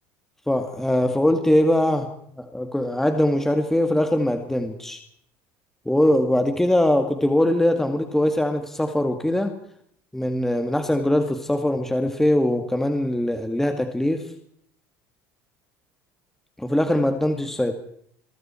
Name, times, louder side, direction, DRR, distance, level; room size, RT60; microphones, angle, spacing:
voice 1, 0.5-2.1 2.4-5.0 5.9-9.5 10.1-14.3 16.6-17.7, left 1 dB, 5° left, 5 dB, 2.2 m, -22 dB
29.0 x 22.5 x 4.5 m, 0.67 s
supercardioid pair, 105°, 7 cm